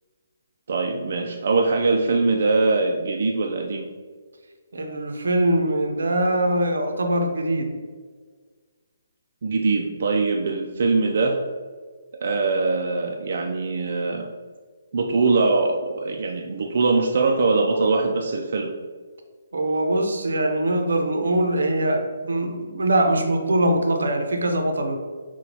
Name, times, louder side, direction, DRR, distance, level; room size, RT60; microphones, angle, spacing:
voice 1, 0.7-3.9 9.4-11.4 12.1-14.3 14.9-18.7, right 3 dB, 55° right, 1 dB, 0.4 m, -22 dB
voice 2, 4.7-7.7 19.5-25.0, right 1 dB, 85° right, 4 dB, 0.7 m, -22 dB
5.9 x 2.3 x 2.8 m, 1.5 s
hypercardioid pair, 165°, 0 cm